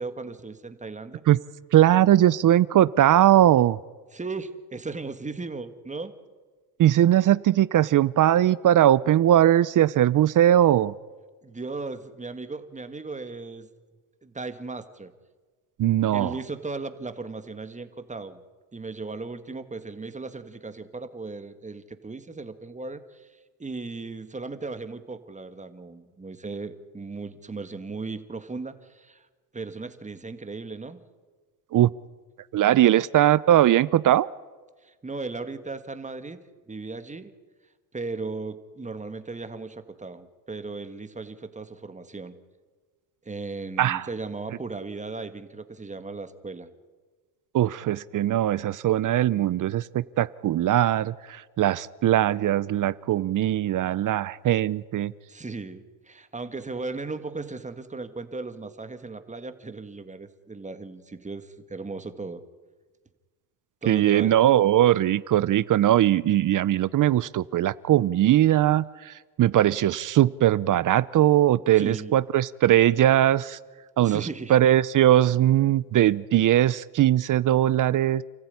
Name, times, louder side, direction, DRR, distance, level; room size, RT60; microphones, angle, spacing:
voice 1, 0.0-1.2 4.1-6.1 11.4-13.7 14.2-15.1 16.1-18.4 18.7-29.3 29.5-31.0 34.8-36.4 36.7-37.3 37.9-42.4 43.3-46.7 55.3-62.4 63.8-64.3 71.8-72.1 74.0-74.6, right 3 dB, 15° right, 9 dB, 1.9 m, -36 dB
voice 2, 1.7-3.8 6.8-10.9 15.8-16.3 31.7-31.9 32.5-34.3 43.8-44.1 47.5-55.1 63.9-73.6 74.0-78.2, right 12 dB, 45° right, 19 dB, 0.7 m, -20 dB
28.5 x 14.5 x 9.6 m, 1.4 s
supercardioid pair, 95°, 44 cm